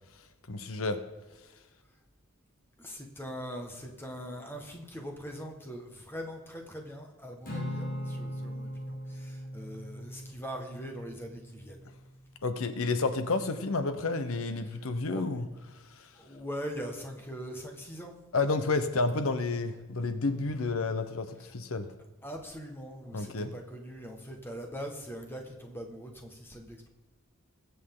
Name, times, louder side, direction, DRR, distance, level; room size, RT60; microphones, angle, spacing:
voice 1, 0.5-1.0 12.4-15.5 16.0-16.1 18.3-21.9 23.1-23.5, left 3 dB, 80° left, 10 dB, 1.0 m, -30 dB
voice 2, 2.8-11.9 14.6-15.4 16.1-18.2 22.2-26.9, equal, 10° left, 3 dB, 1.6 m, -42 dB
Acoustic guitar / Strum, 7.4-11.9, equal, 40° left, 2.6 m, -39 dB
21.5 x 8.3 x 3.9 m, 1.2 s
head